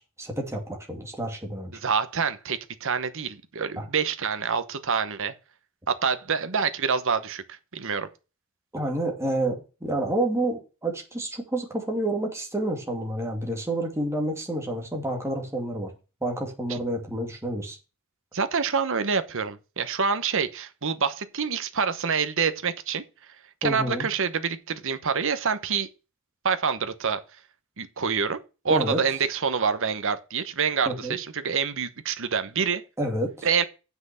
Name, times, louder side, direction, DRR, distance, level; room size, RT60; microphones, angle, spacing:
voice 1, 0.0-1.7 3.8-3.9 8.7-15.9 16.2-17.8 23.6-24.1 28.7-29.0 30.9-31.2 33.0-33.5, right 1 dB, 15° right, 2.4 m, -29 dB
voice 2, 1.8-5.3 6.0-8.1 16.7-16.8 18.3-23.0 23.6-25.9 26.4-27.2 27.8-28.4 28.6-32.8 33.4-33.6, right 6 dB, 65° right, 1.1 m, -26 dB
7.8 x 6.1 x 7.0 m
head